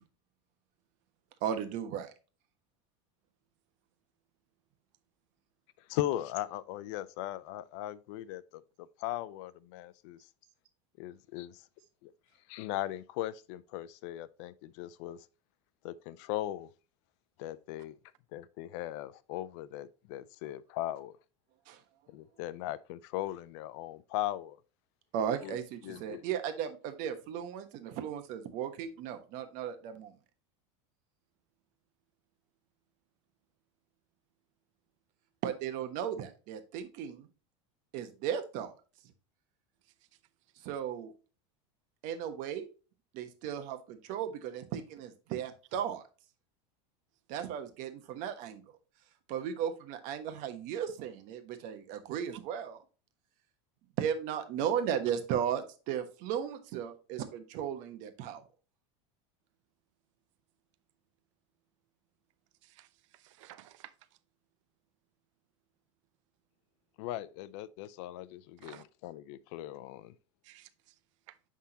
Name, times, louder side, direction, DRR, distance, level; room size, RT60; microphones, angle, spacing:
voice 1, 1.4-2.1 21.7-21.8 25.1-30.1 35.4-37.3 37.9-38.7 40.6-41.1 42.0-42.7 43.1-46.0 47.3-48.6 49.3-52.8 54.0-58.4, right 9 dB, 55° right, 1.2 m, -36 dB
voice 2, 5.9-10.2 11.0-11.6 12.0-12.1 12.5-15.3 15.8-16.7 17.4-18.0 18.3-21.2 22.1-24.6 25.4-25.6 25.8-26.2 67.0-70.1, left 14 dB, 65° left, 0.5 m, -38 dB
voice 3, 62.6-63.9 68.6-68.8 70.4-70.9 71.3-71.4, right 14 dB, 80° right, 0.6 m, -54 dB
9.9 x 3.7 x 2.8 m
supercardioid pair, 125°, 16 cm